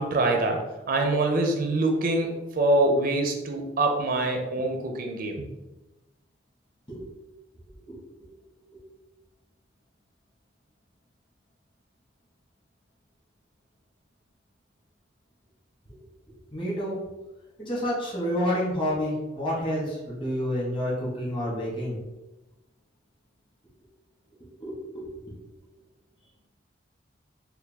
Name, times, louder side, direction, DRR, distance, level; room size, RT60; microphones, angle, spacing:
voice 1, 0.0-5.4, right 2 dB, 50° right, 3 dB, 0.4 m, -25 dB
voice 2, 7.7-8.3 8.7-8.8 15.9-16.0 16.5-17.0 17.6-22.0 24.6-25.4, equal, 25° left, -6 dB, 1.2 m, -29 dB
4.4 x 2.2 x 3.4 m, 1.0 s
head